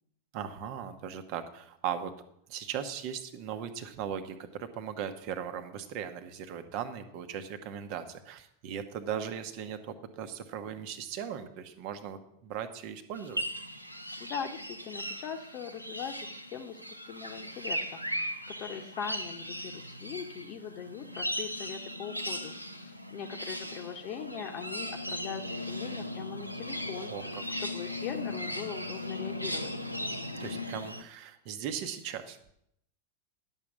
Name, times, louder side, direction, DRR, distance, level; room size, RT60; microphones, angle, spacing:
voice 1, 0.3-2.1 2.5-13.4 27.1-27.4 30.4-32.5, right 8 dB, 45° right, 9 dB, 1.1 m, -38 dB
sound 1, 13.2-31.0, left 1 dB, 90° right, 0.8 m, -38 dB
voice 2, 14.2-22.5 22.8-27.1 27.6-29.7, left 7 dB, 40° left, 6 dB, 1.0 m, -41 dB
11.0 x 7.3 x 6.2 m, 0.74 s
figure-of-eight pair, 90°, 0 cm